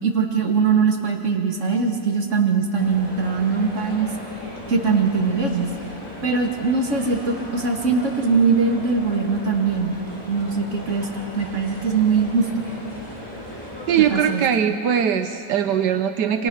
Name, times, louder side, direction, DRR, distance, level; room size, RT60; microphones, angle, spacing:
voice 1, 0.0-4.1 4.7-5.7 6.2-10.0 10.3-11.1 11.3-12.5 14.0-14.4, right 5 dB, 45° right, 1 dB, 2.6 m, -21 dB
sound 1, 2.8-14.3, left 1 dB, 15° left, 4.7 m, -37 dB
voice 2, 13.9-16.5, right 8 dB, 90° right, 8 dB, 1.5 m, -21 dB
28.5 x 24.5 x 6.4 m, 2.7 s
omnidirectional pair, 1.8 m